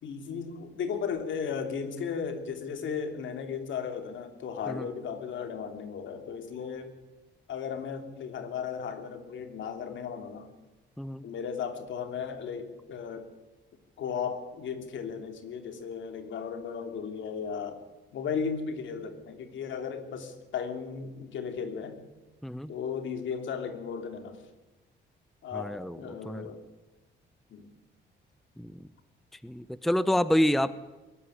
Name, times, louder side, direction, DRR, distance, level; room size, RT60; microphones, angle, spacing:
voice 1, 0.0-6.9 7.5-10.5 11.2-13.3 14.0-17.8 18.1-22.0 22.7-24.4 25.4-26.6 27.5-27.7, left 6 dB, 70° left, 7 dB, 3.0 m, -35 dB
voice 2, 25.5-26.0 26.2-26.5 28.6-28.9 29.4-30.8, equal, ahead, 16 dB, 0.7 m, -28 dB
22.0 x 12.5 x 9.8 m, 1.1 s
cardioid pair, 90°, 20 cm